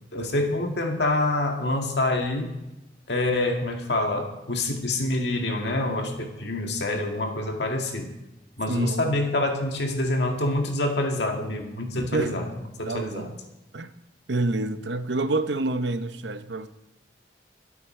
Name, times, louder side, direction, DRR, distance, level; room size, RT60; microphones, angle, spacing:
voice 1, 0.1-2.6 3.1-8.1 8.6-12.5 12.8-13.3, left 2 dB, 80° left, 2.1 m, -26 dB
voice 2, 8.7-9.0 12.1-12.3 12.9-13.3 13.7-13.9 14.3-16.7, right 2 dB, 90° right, 0.8 m, -27 dB
22.0 x 8.4 x 4.4 m
head